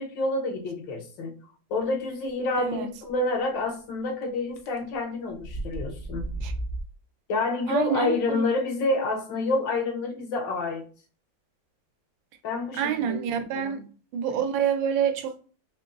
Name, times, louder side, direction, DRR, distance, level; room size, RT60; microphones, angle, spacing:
voice 1, 0.0-1.3 1.7-6.3 7.3-10.8 12.4-13.2 13.5-13.8, left 2 dB, 80° left, 1.5 m, -28 dB
voice 2, 2.6-2.9 6.4-6.5 7.7-8.4 12.7-13.8 14.1-15.4, right 8 dB, 85° right, 1.3 m, -27 dB
sound 1, 3.1-3.2 4.6-4.8 5.3-6.9, right 2 dB, 60° left, 1.0 m, -33 dB
4.1 x 3.0 x 2.3 m
omnidirectional pair, 2.0 m